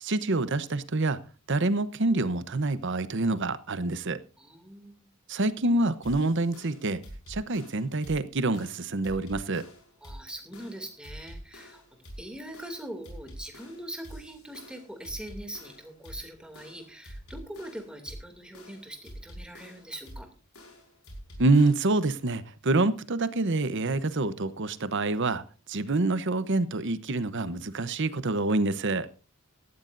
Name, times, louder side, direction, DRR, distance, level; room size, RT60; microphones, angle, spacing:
voice 1, 0.0-1.2 1.5-4.2 5.3-7.0 7.3-9.7 21.4-25.4 25.7-29.1, right 2 dB, 55° right, 14 dB, 0.9 m, -26 dB
voice 2, 4.4-5.1 10.0-20.3, right 1 dB, 5° right, 4 dB, 2.6 m, -42 dB
sound 1, 6.0-22.0, equal, 75° left, 5.2 m, -46 dB
17.5 x 13.5 x 2.6 m, 0.34 s
head